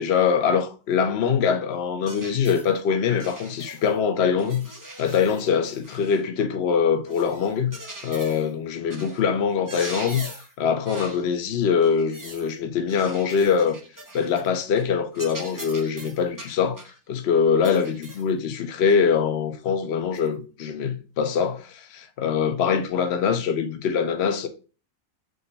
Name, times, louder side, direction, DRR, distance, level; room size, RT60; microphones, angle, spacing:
voice 1, 0.0-4.7 5.0-7.8 8.0-10.3 10.6-13.8 14.1-16.8 17.1-24.5, left 6 dB, 60° left, 0.8 m, -23 dB
sound 1, 2.0-2.7 3.2-4.0 4.4-6.3 7.0-8.5 8.9-9.2 9.5-10.5 10.8-11.2 11.8-12.5 12.9-14.5 14.8-14.9 15.1-17.0 17.6-18.3 18.9-19.0 20.1-20.3, right 1 dB, 20° right, 0.7 m, -41 dB
5.2 x 2.2 x 3.8 m
omnidirectional pair, 1.5 m